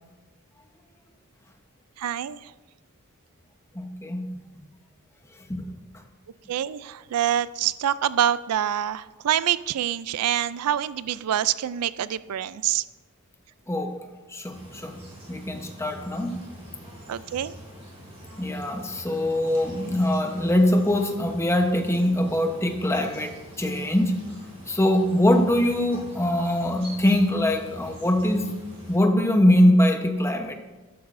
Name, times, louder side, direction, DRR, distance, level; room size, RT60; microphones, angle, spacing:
voice 1, 2.0-2.5 6.5-12.8 17.1-17.5, right 10 dB, 90° right, 17 dB, 0.4 m, -26 dB
voice 2, 3.8-4.3 5.5-5.7 13.7-14.0 14.3-15.0 15.3-16.4 18.4-24.2 24.7-28.5 28.9-30.6, left 1 dB, 10° left, 5 dB, 0.9 m, -22 dB
sound 1, 14.5-29.0, equal, 30° right, 4.1 m, -44 dB
13.0 x 12.5 x 2.6 m, 1.2 s
head